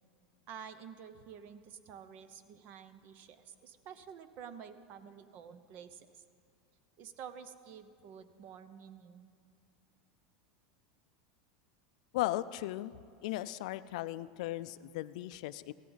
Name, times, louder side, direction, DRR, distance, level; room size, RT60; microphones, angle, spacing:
voice 1, 0.5-6.2 7.0-9.3, right 7 dB, 50° right, 12 dB, 0.8 m, -50 dB
voice 2, 12.1-12.9 13.2-15.7, left 16 dB, 70° left, 15 dB, 0.4 m, -36 dB
16.5 x 13.5 x 4.0 m, 2.3 s
supercardioid pair, 120°, 4 cm